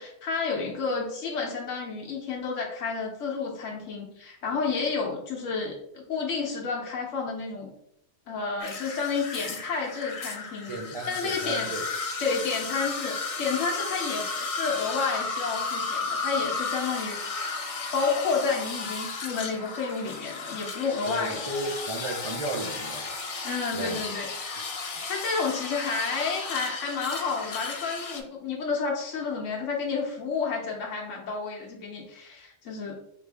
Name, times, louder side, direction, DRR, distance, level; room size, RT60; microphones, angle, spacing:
voice 1, 0.0-7.7 8.3-10.7 11.1-11.7 12.2-17.4 17.9-21.4 23.4-24.3 25.1-33.0, left 4 dB, 80° left, -2 dB, 1.0 m, -30 dB
sound 1, 8.6-28.2, left 4 dB, 50° left, 0.4 m, -34 dB
voice 2, 10.7-11.9 21.1-23.1 23.7-24.0, right 1 dB, 45° right, -1 dB, 0.4 m, -34 dB
5.0 x 2.5 x 3.3 m, 0.78 s
omnidirectional pair, 1.3 m